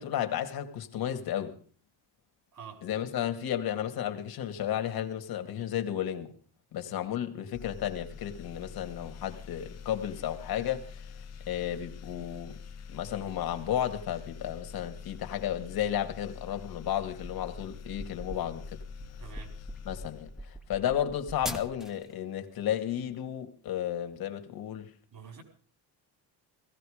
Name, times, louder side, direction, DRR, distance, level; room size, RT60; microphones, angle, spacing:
voice 1, 0.0-1.6 2.8-6.3 6.7-11.1 11.5-12.5 12.9-18.8 19.8-24.9, left 10 dB, 60° left, 2.2 m, -33 dB
voice 2, 2.5-2.8 19.2-19.5 25.1-25.4, right 7 dB, 50° right, 4.7 m, -46 dB
sound 1, 7.5-20.9, left 6 dB, 40° left, 0.9 m, -45 dB
sound 2, 17.2-22.1, equal, ahead, 1.3 m, -43 dB
18.0 x 15.0 x 5.1 m
cardioid pair, 115°, 41 cm